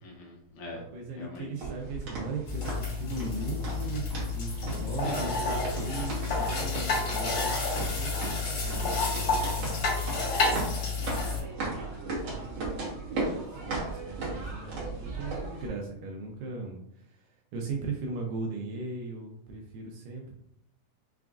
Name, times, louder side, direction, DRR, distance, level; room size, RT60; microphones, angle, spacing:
voice 1, 0.0-0.8 1.2-1.7 4.8-5.5 10.3-10.7 11.2-11.5, left 2 dB, 75° left, -2 dB, 2.1 m, -42 dB
voice 2, 0.7-4.0 4.3-9.6 11.4-12.8 13.0-20.3, right 3 dB, 80° right, 1 dB, 2.1 m, -39 dB
sound 1, 1.6-15.7, right 3 dB, 65° right, 1.7 m, -37 dB
sound 2, 2.5-11.4, left 3 dB, 55° left, 1.9 m, -30 dB
5.9 x 2.4 x 2.3 m, 0.72 s
omnidirectional pair, 4.3 m